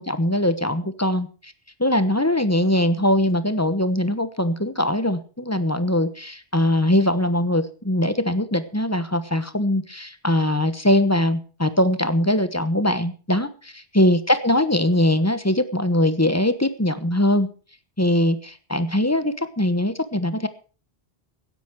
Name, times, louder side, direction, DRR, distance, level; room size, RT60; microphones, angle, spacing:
voice 1, 0.0-1.5 1.8-13.5 13.9-17.5 18.0-20.5, left 1 dB, 15° left, 12 dB, 1.1 m, -21 dB
16.5 x 10.5 x 4.9 m, 0.37 s
omnidirectional pair, 1.1 m